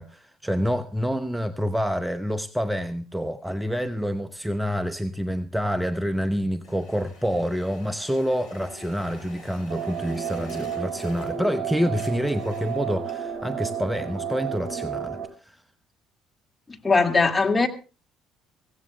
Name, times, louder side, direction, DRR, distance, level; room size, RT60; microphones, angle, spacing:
voice 1, 0.0-15.6, equal, 5° right, 0.8 m, -27 dB
sound 1, 6.6-11.6 11.8-13.4, left 2 dB, 75° left, 5.2 m, -48 dB
sound 2, 9.7-15.3, right 7 dB, 50° right, 1.9 m, -32 dB
voice 2, 16.8-17.7, left 4 dB, 20° left, 2.1 m, -19 dB
24.0 x 16.5 x 2.3 m
figure-of-eight pair, 55°, 0 cm